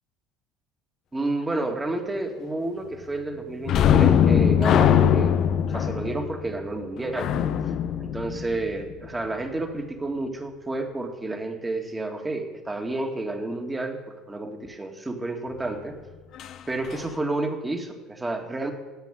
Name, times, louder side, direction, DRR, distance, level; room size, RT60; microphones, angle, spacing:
voice 1, 1.1-5.4 5.7-7.3 8.0-16.0 16.7-18.7, right 2 dB, 15° right, 3 dB, 2.2 m, -30 dB
sound 1, 3.7-9.0 16.4-16.5 16.9-17.1, left 9 dB, 55° left, 0.7 m, -21 dB
10.5 x 8.3 x 9.3 m, 1.2 s
hypercardioid pair, 70°, 0 cm